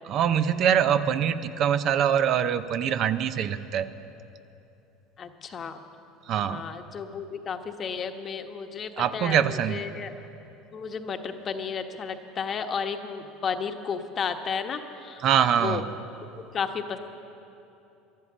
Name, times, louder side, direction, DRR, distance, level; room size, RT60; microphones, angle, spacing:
voice 1, 0.0-3.9 6.3-6.6 9.0-9.9 15.2-15.9, right 9 dB, 55° right, 11 dB, 0.6 m, -24 dB
voice 2, 5.2-5.8 6.4-10.1 10.7-15.2 15.6-15.8 16.5-17.0, left 6 dB, 40° left, 7 dB, 1.1 m, -33 dB
13.0 x 12.0 x 7.2 m, 2.9 s
supercardioid pair, 90°, 0 cm